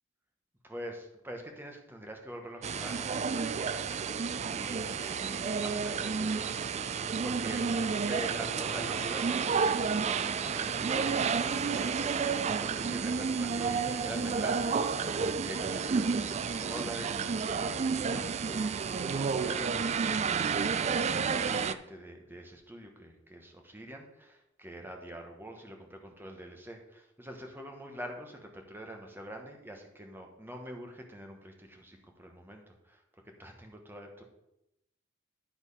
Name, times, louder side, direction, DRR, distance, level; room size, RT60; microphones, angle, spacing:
voice 1, 0.6-3.8 4.5-6.7 7.0-33.0 33.4-34.2, right 1 dB, 10° right, 3 dB, 1.2 m, -45 dB
sound 1, 2.6-21.7, right 5 dB, 35° right, 0.3 m, -31 dB
10.5 x 4.5 x 5.6 m, 0.87 s
head